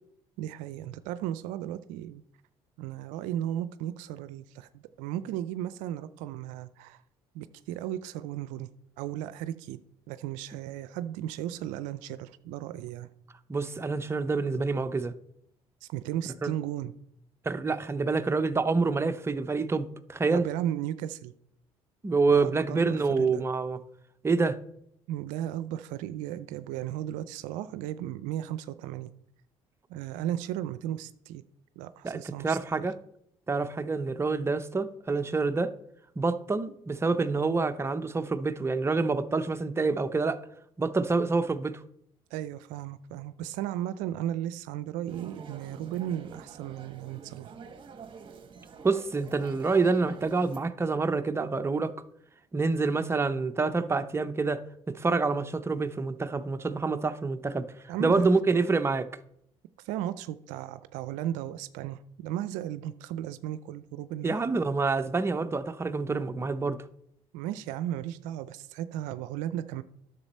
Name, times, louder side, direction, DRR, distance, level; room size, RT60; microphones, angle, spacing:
voice 1, 0.4-2.2 2.8-7.0 7.3-8.7 9.0-9.8 10.1-13.1 15.8-16.9 20.3-21.3 22.3-23.4 25.1-29.1 29.9-31.4 31.8-32.9 42.3-47.5 57.9-58.2 59.8-64.4 67.3-69.8, right 12 dB, 80° right, 0.4 m, -35 dB
voice 2, 13.5-15.1 16.4-16.5 17.4-20.4 22.0-23.8 24.2-24.6 32.0-33.0 33.5-35.7 36.2-40.4 40.8-41.8 48.8-51.9 52.5-57.7 58.0-59.1 64.2-66.8, right 4 dB, 20° right, 0.7 m, -27 dB
sound 1, 45.1-50.6, right 5 dB, 40° right, 1.1 m, -47 dB
9.8 x 6.8 x 4.2 m
supercardioid pair, 75°, 13 cm